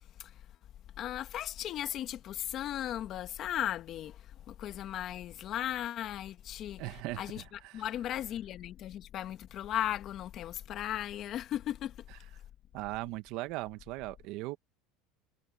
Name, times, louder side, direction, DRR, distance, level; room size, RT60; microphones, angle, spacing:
voice 1, 1.0-7.4 7.7-12.0, left 11 dB, 45° left, 1.6 m, -36 dB
voice 2, 6.8-7.8 12.7-14.6, right 19 dB, 60° right, 1.5 m, -39 dB
supercardioid pair, 120°, 0 cm